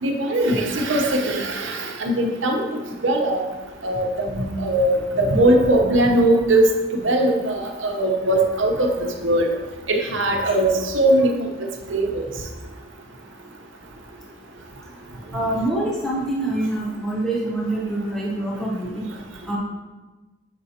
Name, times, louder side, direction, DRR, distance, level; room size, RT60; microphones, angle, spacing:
voice 1, 0.0-2.6 3.0-3.4 3.8-6.7 6.9-9.5 9.9-12.3, right 1 dB, 80° right, 2 dB, 0.8 m, -20 dB
voice 2, 15.3-19.1 19.4-19.6, right 1 dB, 5° left, -6 dB, 0.9 m, -25 dB
6.8 x 5.3 x 2.8 m, 1.2 s
head